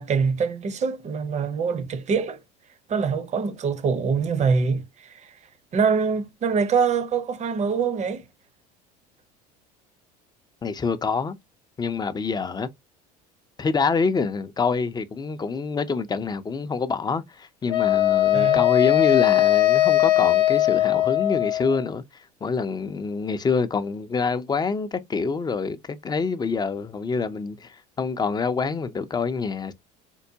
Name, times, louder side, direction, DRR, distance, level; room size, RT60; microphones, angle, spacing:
voice 1, 0.0-2.4 2.9-5.3 5.7-8.2 18.3-18.6, right 5 dB, 35° right, 0.7 m, -24 dB
voice 2, 10.6-11.3 11.8-12.7 13.6-29.7, left 4 dB, 20° left, 0.5 m, -26 dB
Wind instrument woodwind instrument, 17.7-21.8, left 14 dB, 85° left, 0.7 m, -20 dB
4.5 x 2.1 x 2.7 m
hypercardioid pair, 80°, 20 cm